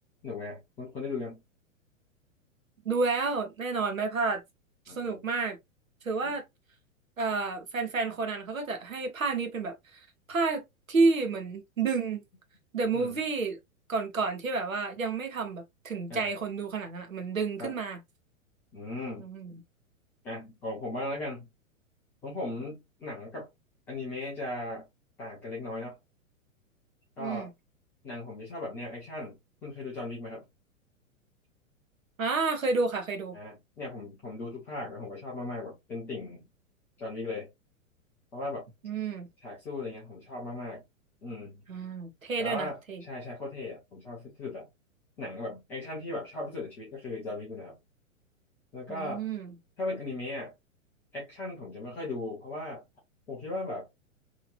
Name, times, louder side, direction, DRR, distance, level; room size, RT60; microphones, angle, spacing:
voice 1, 0.2-1.4 4.9-5.2 6.2-6.3 12.9-13.2 16.1-16.3 17.6-17.8 18.7-19.3 20.2-21.5 22.2-23.5 23.9-24.9 25.2-26.0 27.2-27.5 28.0-30.4 33.3-36.5 37.0-37.5 38.3-38.7 39.4-40.8 41.2-41.5 42.4-44.7 45.2-47.8 48.7-49.2 49.8-50.5 51.1-52.8 53.3-53.9, left 2 dB, 5° left, 0.3 m, -37 dB
voice 2, 2.8-4.4 4.9-5.6 6.0-6.4 7.2-10.0 10.3-12.2 12.7-13.6 13.9-18.0 19.2-19.5 27.2-27.5 32.2-33.4 38.8-39.3 41.7-43.0 48.9-49.5, right 4 dB, 75° right, 1.1 m, -30 dB
3.0 x 2.8 x 2.5 m
figure-of-eight pair, 105°, 40 cm